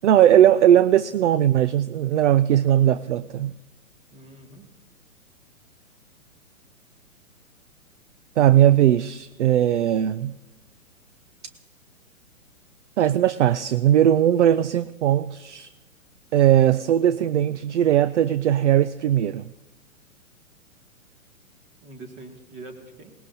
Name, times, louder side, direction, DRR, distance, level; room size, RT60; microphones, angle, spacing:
voice 1, 0.0-3.6 8.4-10.4 13.0-15.7 16.3-19.5, right 11 dB, 60° right, 15 dB, 0.5 m, -19 dB
voice 2, 0.5-1.0 4.1-4.7 21.8-23.1, right 2 dB, 25° right, 4 dB, 2.2 m, -44 dB
20.5 x 19.0 x 2.8 m, 1.1 s
figure-of-eight pair, 120°, 42 cm